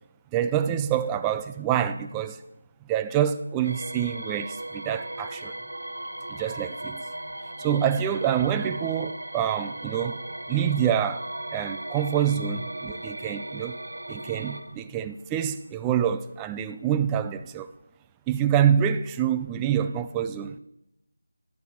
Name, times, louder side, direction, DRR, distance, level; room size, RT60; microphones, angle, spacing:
voice 1, 0.3-2.4 2.9-5.5 6.3-7.0 7.6-10.2 10.5-11.2 11.5-13.8 14.1-17.7 18.3-20.5, right 9 dB, 10° right, 0.4 m, -26 dB
sound 1, 3.6-14.6, right 1 dB, 80° right, 2.0 m, -37 dB
24.0 x 8.6 x 4.3 m
figure-of-eight pair, 165°, 0 cm